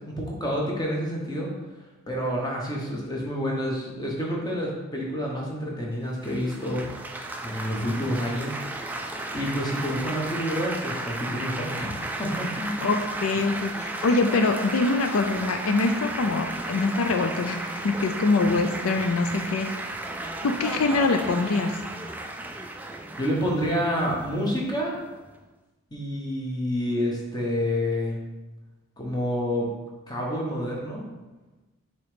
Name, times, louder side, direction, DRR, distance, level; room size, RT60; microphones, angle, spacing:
voice 1, 0.1-1.5 2.1-6.8 7.4-8.6 9.3-11.9 12.2-12.8 23.2-25.0 25.9-28.2 29.0-29.7 30.1-31.1, equal, 20° left, -2 dB, 1.1 m, -28 dB
Laughter / Applause / Chatter, 6.2-25.4, right 2 dB, 10° right, 0.3 m, -34 dB
voice 2, 12.8-19.7 20.4-21.7, left 3 dB, 75° left, 6 dB, 0.4 m, -24 dB
7.0 x 3.0 x 5.0 m, 1.1 s
head